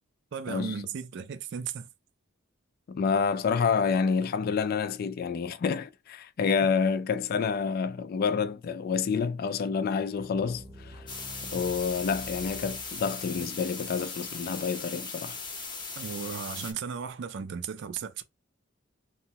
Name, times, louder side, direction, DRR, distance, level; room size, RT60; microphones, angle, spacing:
voice 1, 0.3-1.9 16.0-18.2, right 6 dB, 60° right, 0.4 m, -36 dB
voice 2, 2.9-11.1 11.4-15.4, left 5 dB, 50° left, 0.3 m, -28 dB
sound 1, 10.2-13.3, equal, 20° right, 0.7 m, -47 dB
sound 2, 11.1-16.7, left 4 dB, 25° left, 0.7 m, -38 dB
2.9 x 2.2 x 2.8 m
head